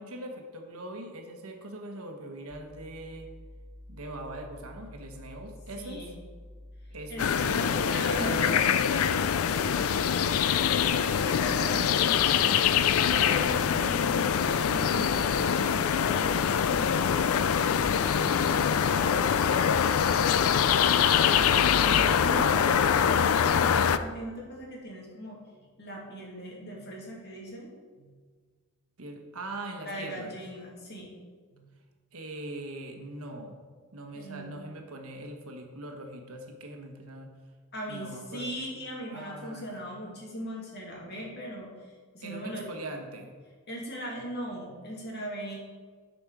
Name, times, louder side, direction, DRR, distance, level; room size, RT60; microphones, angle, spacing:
voice 1, 0.0-3.3 3.9-6.1 6.9-9.5 13.6-14.3 29.0-30.3 32.1-37.3 37.9-38.5 39.1-39.8 42.2-43.4, right 1 dB, 70° right, 4 dB, 1.2 m, -41 dB
sound 1, 2.5-22.0, left 1 dB, 5° right, 1.0 m, -48 dB
voice 2, 5.8-6.1 7.1-8.7 9.5-10.2 10.8-12.5 13.1-18.7 19.0-19.7 21.8-25.4 25.8-28.1 29.9-31.1 31.6-31.7 34.1-34.5 37.7-42.7 43.7-45.6, equal, 50° left, -3 dB, 2.5 m, -39 dB
sound 2, 7.2-24.0, left 8 dB, 70° left, 0.4 m, -24 dB
11.5 x 5.2 x 4.7 m, 1.5 s
head